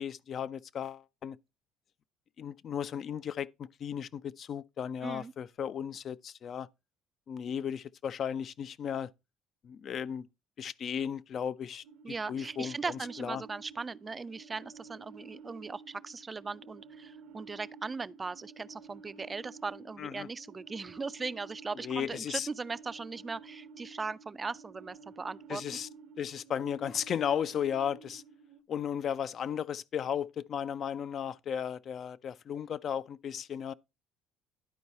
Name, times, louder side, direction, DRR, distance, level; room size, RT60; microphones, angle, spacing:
voice 1, 0.0-1.4 2.4-6.7 7.3-9.1 9.6-10.3 10.6-11.8 12.3-13.4 20.0-20.3 21.8-22.5 25.5-25.9 26.2-28.2 28.7-33.7, left 8 dB, 50° left, 0.4 m, -35 dB
voice 2, 5.0-5.3 12.0-25.6, right 4 dB, 25° right, 0.4 m, -39 dB
sound 1, 11.8-28.6, right 5 dB, 70° right, 0.9 m, -52 dB
11.0 x 4.6 x 4.1 m
supercardioid pair, 80°, 0 cm